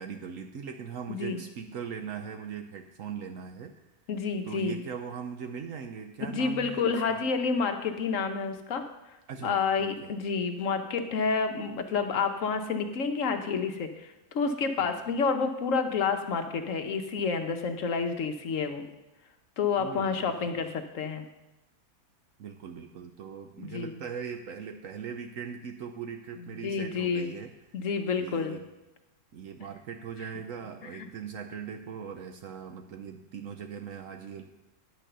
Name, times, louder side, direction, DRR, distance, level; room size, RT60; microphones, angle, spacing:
voice 1, 0.0-3.7 4.4-7.2 9.3-10.1 14.8-15.0 19.8-20.6 22.4-27.5 28.2-28.7 29.3-34.4, right 7 dB, 65° right, 5 dB, 1.0 m, -40 dB
voice 2, 1.1-1.4 4.1-4.8 6.3-8.9 9.4-18.8 19.6-21.3 23.6-24.0 26.6-27.3 27.7-28.6 30.9-31.1, left 5 dB, 65° left, 7 dB, 1.1 m, -29 dB
10.0 x 6.2 x 6.7 m, 0.98 s
omnidirectional pair, 1.6 m